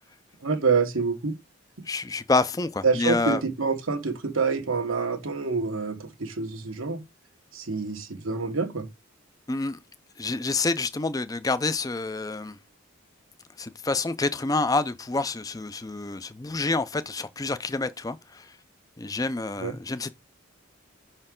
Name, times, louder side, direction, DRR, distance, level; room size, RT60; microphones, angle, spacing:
voice 1, 0.4-1.3 2.8-7.0 7.5-8.9 19.6-19.7, right 4 dB, 90° right, 1.4 m, -27 dB
voice 2, 1.9-3.4 9.5-9.8 10.2-12.6 13.6-18.5 19.0-20.1, left 3 dB, 20° left, 0.4 m, -28 dB
5.8 x 4.4 x 3.7 m
head